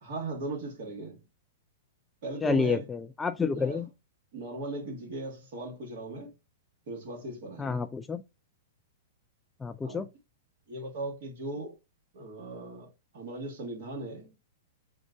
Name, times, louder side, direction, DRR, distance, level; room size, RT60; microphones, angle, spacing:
voice 1, 0.0-1.2 2.2-2.9 3.5-3.8 4.3-6.3 6.9-7.9 9.8-10.1 10.7-11.7 12.1-14.3, right 2 dB, 60° right, 1.9 m, -38 dB
voice 2, 2.4-3.9 7.6-8.2 9.6-10.1, left 5 dB, 15° left, 0.3 m, -29 dB
3.7 x 2.5 x 3.5 m
hypercardioid pair, 110°, 0 cm